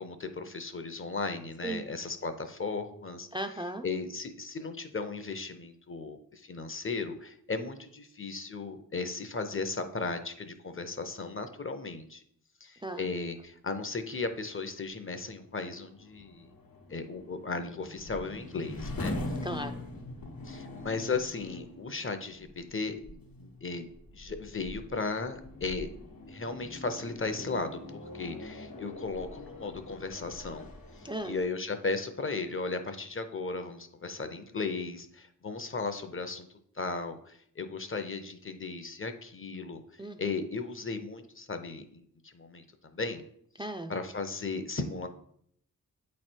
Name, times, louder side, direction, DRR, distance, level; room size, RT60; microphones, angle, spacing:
voice 1, 0.0-3.3 3.8-12.2 12.6-16.5 16.9-19.1 20.4-23.9 24.1-25.9 26.2-30.7 31.0-36.5 36.7-39.8 40.2-43.2 43.9-45.1, left 3 dB, 40° left, 8 dB, 0.6 m, -36 dB
voice 2, 3.3-3.8 12.8-13.1 19.4-19.8 31.0-31.3 40.0-40.3 43.6-43.9, right 1 dB, 15° right, 5 dB, 0.4 m, -36 dB
sound 1, 14.5-31.5, left 2 dB, 80° left, 1.1 m, -43 dB
8.3 x 3.2 x 4.4 m, 0.67 s
wide cardioid pair, 85°, 34 cm